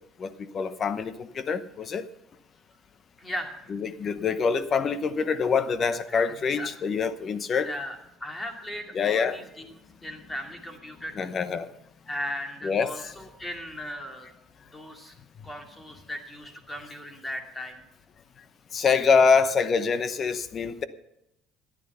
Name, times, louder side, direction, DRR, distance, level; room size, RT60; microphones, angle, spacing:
voice 1, 0.2-2.0 3.7-7.7 8.9-9.4 11.2-11.7 12.6-13.1 18.7-20.8, left 5 dB, 40° left, 13 dB, 0.9 m, -25 dB
voice 2, 3.2-3.7 6.1-6.7 7.6-8.0 8.2-11.4 12.1-14.3 14.7-15.1 15.4-17.8, left 1 dB, 15° left, 3 dB, 2.4 m, -37 dB
14.0 x 10.5 x 5.6 m, 0.84 s
cardioid pair, 115°, 0 cm